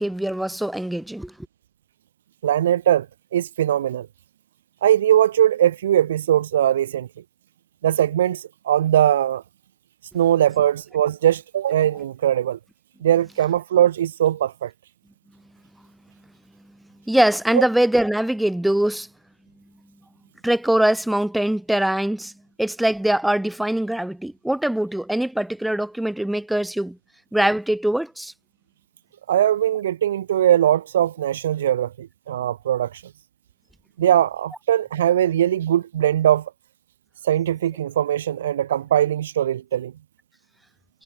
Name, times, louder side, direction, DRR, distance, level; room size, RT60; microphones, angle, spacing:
voice 1, 0.0-1.3 17.1-19.1 20.4-22.3 22.6-27.0 27.3-28.3, right 1 dB, 5° right, 0.5 m, -22 dB
voice 2, 2.4-3.1 3.3-4.1 4.8-7.1 7.8-9.4 10.1-12.6 13.0-14.7 29.3-33.0 34.0-36.5 37.2-39.9, right 11 dB, 60° right, 0.5 m, -20 dB
figure-of-eight pair, 90°, 0 cm